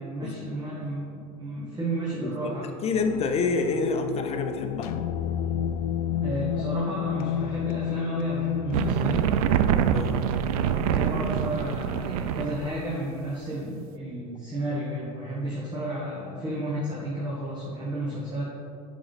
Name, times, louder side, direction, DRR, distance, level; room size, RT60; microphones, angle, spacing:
voice 1, 0.0-2.7 6.2-9.2 10.6-18.5, right 1 dB, 25° right, -6 dB, 1.6 m, -32 dB
voice 2, 2.2-4.9 9.9-10.2, left 4 dB, 35° left, 5 dB, 0.8 m, -28 dB
sound 1, 2.9-9.3, left 9 dB, 75° left, 0.5 m, -30 dB
sound 2, 8.7-12.7, right 8 dB, 75° right, 0.4 m, -25 dB
7.5 x 5.5 x 4.1 m, 2.6 s
hypercardioid pair, 100°, 19 cm